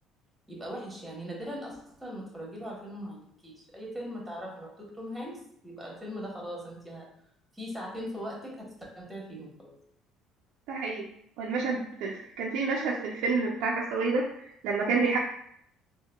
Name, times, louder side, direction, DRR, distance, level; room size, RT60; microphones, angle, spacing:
voice 1, 0.5-7.1 7.5-9.7, equal, 10° right, -2 dB, 1.1 m, -40 dB
voice 2, 10.7-11.1 11.4-15.2, right 4 dB, 80° right, -2 dB, 0.4 m, -29 dB
3.7 x 2.1 x 2.2 m, 0.70 s
cardioid pair, 95°, 0 cm